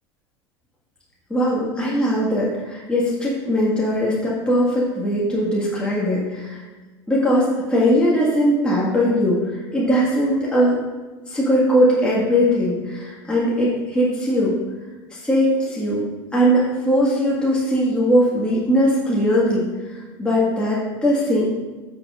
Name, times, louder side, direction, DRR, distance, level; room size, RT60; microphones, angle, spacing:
voice 1, 1.3-6.6 7.1-10.8 11.3-14.5 15.1-16.0 16.3-21.5, equal, 5° left, -7 dB, 1.9 m, -20 dB
9.5 x 6.4 x 2.6 m, 1.3 s
hypercardioid pair, 90°, 15 cm